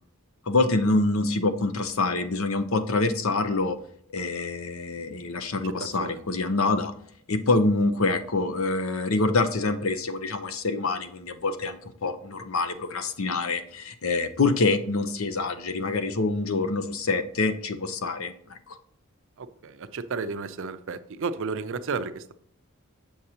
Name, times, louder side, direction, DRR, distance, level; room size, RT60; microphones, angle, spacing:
voice 1, 0.5-3.8 4.1-6.9 7.3-18.6, left 3 dB, 70° left, 9 dB, 0.7 m, -26 dB
voice 2, 5.6-6.2 19.4-22.3, right 4 dB, 65° right, 12 dB, 0.5 m, -33 dB
7.3 x 6.4 x 2.9 m, 0.64 s
head